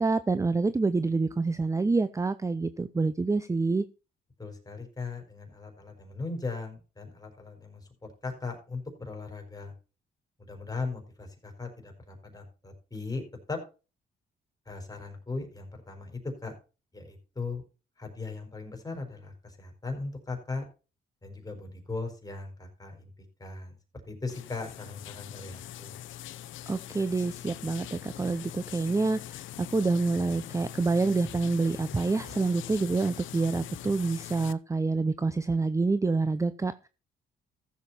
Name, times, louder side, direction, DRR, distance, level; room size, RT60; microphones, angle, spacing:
voice 1, 0.0-3.8 26.7-36.9, right 3 dB, 15° right, 14 dB, 0.5 m, -27 dB
voice 2, 4.4-7.9 8.2-9.7 10.4-13.2 13.5-13.6 14.7-16.5 16.9-17.6 18.0-20.6 21.2-23.1 23.4-23.8 24.1-25.9, left 3 dB, 20° left, 3 dB, 4.7 m, -38 dB
sound 1, 24.3-34.5, left 13 dB, 75° left, 0.6 m, -43 dB
15.0 x 7.3 x 4.2 m, 0.32 s
cardioid pair, 90°, 20 cm